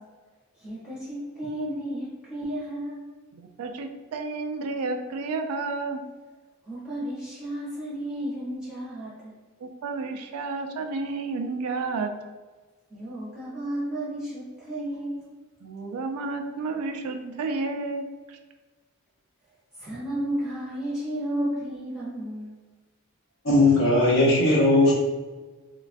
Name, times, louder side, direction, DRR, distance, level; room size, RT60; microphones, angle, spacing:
voice 1, 0.5-3.0 6.6-9.3 12.9-15.3 19.8-22.6, right 1 dB, 5° right, -10 dB, 0.7 m, -33 dB
voice 2, 3.3-6.0 9.6-12.1 15.6-18.4, right 3 dB, 85° right, 5 dB, 0.3 m, -31 dB
voice 3, 23.4-24.9, left 2 dB, 60° left, -4 dB, 0.7 m, -18 dB
3.1 x 2.2 x 2.5 m, 1.3 s
head